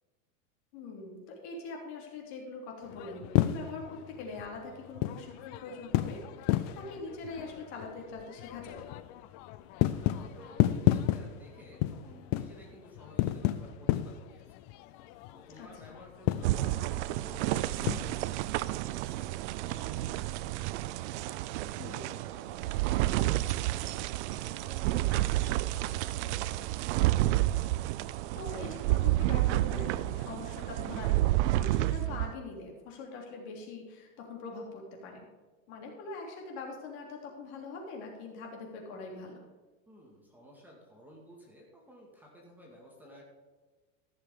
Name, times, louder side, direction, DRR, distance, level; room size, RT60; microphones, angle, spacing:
voice 1, 0.7-8.9 15.6-15.9 21.8-22.2 28.3-35.3 35.7-39.4, left 3 dB, 55° left, 0 dB, 3.3 m, -43 dB
sound 1, 2.8-18.1, left 14 dB, 35° left, 0.4 m, -33 dB
voice 2, 9.8-14.5 15.3-19.3 19.6-20.5 21.2-26.8 39.9-43.2, equal, 5° right, -3 dB, 2.1 m, -54 dB
sound 2, 16.4-32.3, right 16 dB, 60° right, 0.5 m, -30 dB
15.0 x 6.8 x 5.1 m, 1.3 s
supercardioid pair, 150°, 40 cm